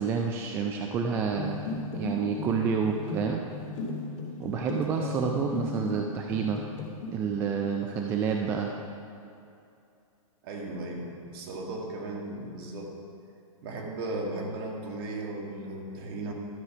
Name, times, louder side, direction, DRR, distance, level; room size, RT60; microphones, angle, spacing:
voice 1, 0.0-1.6 1.9-3.4 4.4-6.6 7.1-8.7, right 6 dB, 10° right, 2 dB, 0.3 m, -29 dB
sound 1, 1.3-6.0 6.3-7.1, left 3 dB, 50° left, 2.9 m, -36 dB
voice 2, 4.9-5.4 10.4-13.0 13.6-16.3, right 2 dB, 40° right, 0 dB, 1.8 m, -36 dB
12.5 x 6.4 x 6.0 m, 2.6 s
hypercardioid pair, 155°, 18 cm